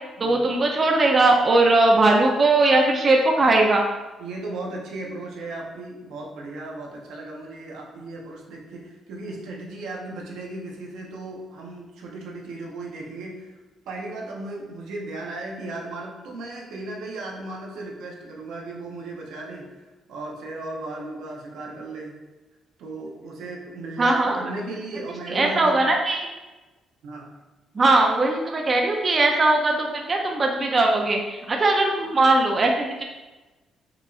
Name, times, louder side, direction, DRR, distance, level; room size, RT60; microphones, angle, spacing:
voice 1, 0.2-3.9 24.0-24.4 25.3-26.3 27.7-33.0, right 2 dB, 35° right, 1 dB, 0.4 m, -20 dB
voice 2, 4.2-13.5 13.9-22.2 22.8-25.8 27.0-27.3, right 2 dB, 85° right, -2 dB, 0.7 m, -36 dB
4.7 x 2.5 x 2.4 m, 1.2 s
cardioid pair, 90°, 0 cm